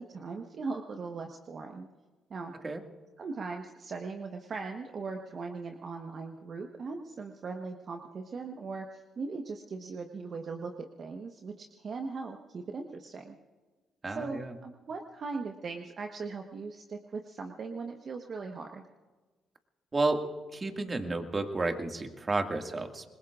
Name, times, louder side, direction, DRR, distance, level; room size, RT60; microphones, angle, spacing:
voice 1, 0.0-1.9 2.3-2.5 3.2-13.4 14.1-18.8, right 4 dB, 50° right, 4 dB, 1.2 m, -39 dB
voice 2, 14.0-14.5 19.9-20.3 20.5-23.0, right 3 dB, 30° right, 5 dB, 2.0 m, -31 dB
27.0 x 21.5 x 2.5 m, 1.3 s
hypercardioid pair, 50°, 0 cm